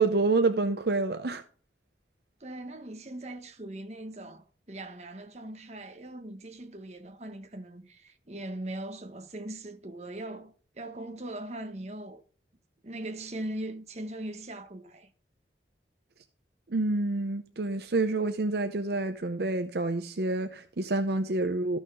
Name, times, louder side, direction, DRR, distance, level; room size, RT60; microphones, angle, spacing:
voice 1, 0.0-1.4 16.7-21.8, right 3 dB, 65° right, 0.7 m, -28 dB
voice 2, 2.4-12.2 12.8-15.1, right 1 dB, 40° right, 1.3 m, -40 dB
13.5 x 6.3 x 3.7 m
head